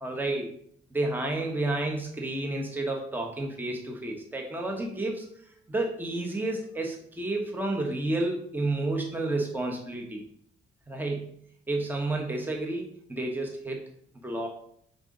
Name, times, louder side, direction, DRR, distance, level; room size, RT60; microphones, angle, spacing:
voice 1, 0.0-0.5 0.9-5.3 5.7-10.2 10.9-11.3 11.7-13.8 14.2-14.5, right 2 dB, 10° right, 1 dB, 1.1 m, -30 dB
5.4 x 3.8 x 5.2 m, 0.64 s
cardioid pair, 90°, 20 cm